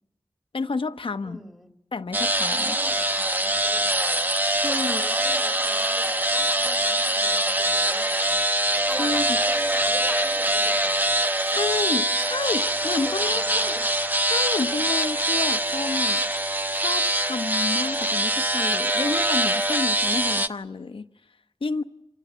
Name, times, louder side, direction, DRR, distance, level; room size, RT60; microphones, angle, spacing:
voice 1, 0.5-1.4 1.9-2.8 4.5-5.0 8.9-9.4 11.4-13.7 14.2-21.1 21.6-21.8, left 4 dB, 85° left, 0.9 m, -30 dB
voice 2, 1.2-1.7 2.5-4.3 4.7-8.4 8.9-11.2 13.1-13.9, equal, 5° right, 2.3 m, -42 dB
sound 1, 2.1-20.5, right 1 dB, 20° right, 0.9 m, -23 dB
27.0 x 16.0 x 9.3 m
wide cardioid pair, 75°, 9 cm